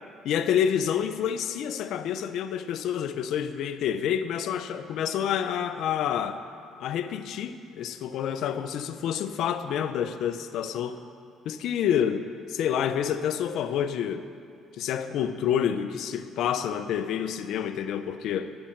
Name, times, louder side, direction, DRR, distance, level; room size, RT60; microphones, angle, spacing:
voice 1, 0.2-6.4 6.8-11.0 11.4-14.3 14.8-18.6, left 9 dB, 70° left, 9 dB, 0.6 m, -28 dB
20.5 x 7.5 x 4.6 m, 2.3 s
cardioid pair, 120°, 0 cm